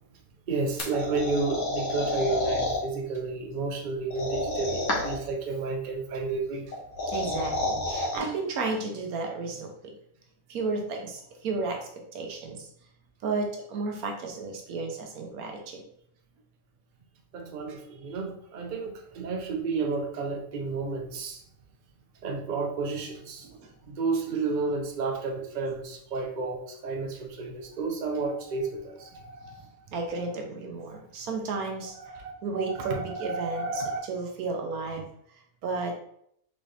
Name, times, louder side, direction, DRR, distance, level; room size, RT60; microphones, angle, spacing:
voice 1, 0.5-6.7 17.3-21.4 22.2-23.5 23.9-29.6 32.1-34.0, right 3 dB, 45° right, 1 dB, 0.7 m, -31 dB
sound 1, 0.8-2.8 4.1-5.3 6.7-8.2, left 2 dB, 85° left, 1.6 m, -29 dB
voice 2, 7.1-9.7 10.5-12.7 13.2-15.8 17.7-17.8 23.4-23.7 29.4-29.5 29.9-32.1 32.4-35.9, right 3 dB, 90° right, 2 dB, 1.3 m, -33 dB
4.1 x 3.7 x 3.2 m, 0.69 s
omnidirectional pair, 1.5 m